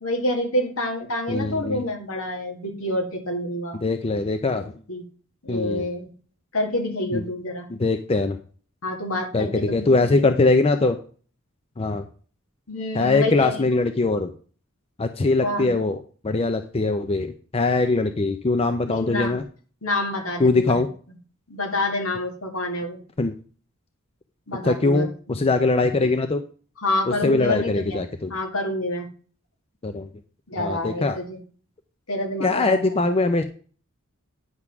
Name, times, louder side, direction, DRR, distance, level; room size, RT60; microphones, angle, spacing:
voice 1, 0.0-3.8 4.5-5.0 5.4-6.1 6.5-7.7 8.8-9.8 12.7-13.8 15.4-15.8 18.9-19.4 19.8-20.7 21.5-23.0 24.5-25.1 26.8-28.0 28.3-29.1 30.5-31.4 32.1-33.2, left 1 dB, 70° left, 3 dB, 2.0 m, -27 dB
voice 2, 1.3-1.8 3.8-4.6 5.5-5.9 7.1-7.2 7.7-8.4 9.3-11.0 11.8-12.1 12.9-14.3 15.0-19.4 20.4-20.9 23.2-23.3 24.6-26.4 27.2-28.3 29.8-30.1 30.6-31.2 32.4-33.4, left 3 dB, 30° left, 8 dB, 0.5 m, -22 dB
9.7 x 3.6 x 5.9 m, 0.41 s
head